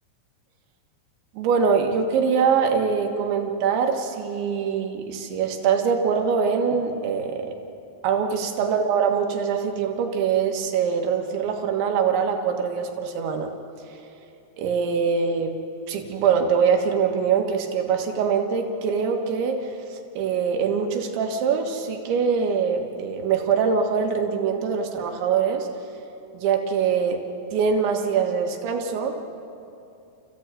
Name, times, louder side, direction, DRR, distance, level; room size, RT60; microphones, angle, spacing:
voice 1, 1.4-7.6 8.0-13.5 14.6-15.6 15.9-25.7 26.3-27.2 27.5-29.2, right 6 dB, 85° right, 3 dB, 3.9 m, -23 dB
29.5 x 15.0 x 9.0 m, 2.7 s
omnidirectional pair, 5.1 m